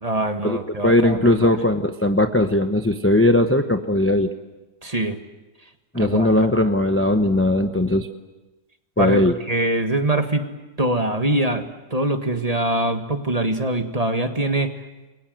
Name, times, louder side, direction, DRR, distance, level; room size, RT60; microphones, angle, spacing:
voice 1, 0.0-1.5 4.8-5.2 5.9-6.3 9.0-10.4 10.8-11.6 11.9-14.7, right 1 dB, 25° right, 6 dB, 1.7 m, -23 dB
voice 2, 0.8-4.3 5.9-8.1 9.0-9.3, left 1 dB, 10° left, 6 dB, 0.7 m, -18 dB
29.0 x 23.0 x 7.8 m, 1.1 s
omnidirectional pair, 1.8 m